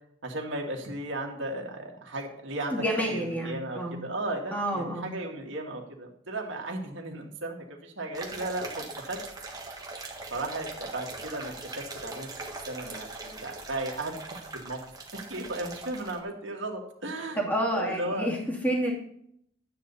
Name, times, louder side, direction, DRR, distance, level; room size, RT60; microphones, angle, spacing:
voice 1, 0.2-9.2 10.3-12.3 12.7-14.8 15.1-17.4 17.7-18.3, right 2 dB, 65° right, 1 dB, 2.3 m, -35 dB
voice 2, 2.7-4.0 4.5-5.1 17.3-18.4 18.6-18.9, right 1 dB, 10° left, -2 dB, 2.7 m, -29 dB
sound 1, 8.1-16.2, right 3 dB, 20° right, 1.6 m, -41 dB
12.5 x 9.1 x 4.2 m, 0.69 s
head